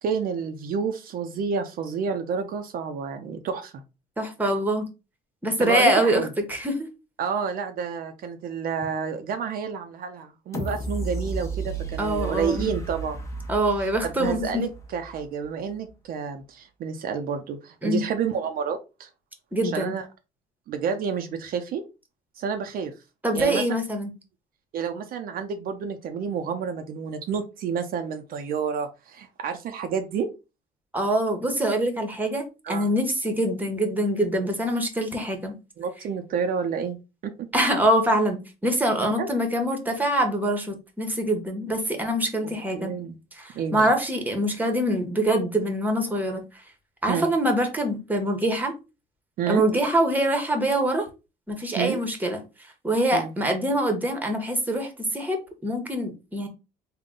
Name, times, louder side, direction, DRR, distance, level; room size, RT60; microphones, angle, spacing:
voice 1, 0.0-3.8 5.6-6.3 7.2-13.2 13.8-19.1 19.7-20.1 20.7-21.8 22.4-22.9 23.3-23.6 24.7-30.3 32.6-32.9 35.8-37.0 37.2-37.5 39.0-39.3 42.4-43.1 43.5-43.9 47.1-47.3 49.4-49.6 51.8-52.0 53.1-53.3, right 6 dB, 60° right, 6 dB, 0.5 m, -29 dB
voice 2, 4.2-4.9 5.4-6.2 6.5-6.9 12.0-12.7 13.5-14.6 17.8-18.0 19.5-19.9 23.2-24.1 30.9-35.5 37.5-42.9 43.3-46.6 47.0-48.7 49.5-51.1 51.5-52.4 52.8-56.5, right 1 dB, 10° right, 5 dB, 1.0 m, -24 dB
sound 1, 10.5-15.4 15.9-16.0, right 2 dB, 15° left, 0.8 m, -33 dB
3.7 x 2.2 x 3.7 m, 0.28 s
cardioid pair, 110°, 17 cm